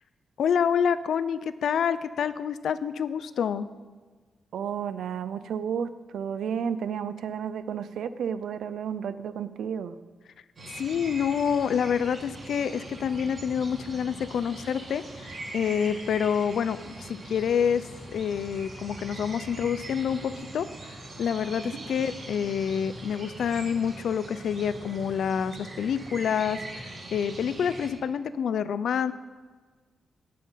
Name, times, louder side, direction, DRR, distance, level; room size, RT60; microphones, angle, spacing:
voice 1, 0.4-3.7 10.7-17.8 18.1-29.1, left 7 dB, 70° left, 14 dB, 0.5 m, -27 dB
voice 2, 4.5-10.0, right 7 dB, 90° right, 13 dB, 0.6 m, -32 dB
sound 1, 10.6-27.9, right 2 dB, 40° right, 3.1 m, -42 dB
17.5 x 7.5 x 5.6 m, 1.4 s
wide cardioid pair, 165°, 0 cm